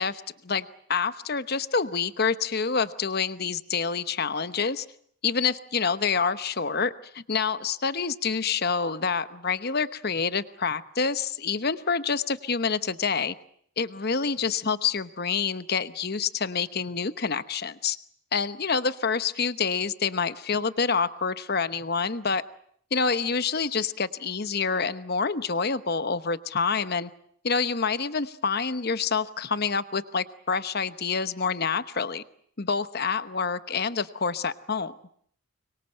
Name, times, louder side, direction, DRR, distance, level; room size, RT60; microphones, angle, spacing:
voice 1, 0.0-4.8 5.2-13.3 13.8-18.0 18.3-22.4 22.9-27.1 27.4-32.2 32.6-34.9, left 5 dB, 45° left, 12 dB, 1.0 m, -27 dB
25.0 x 22.5 x 7.7 m, 0.65 s
head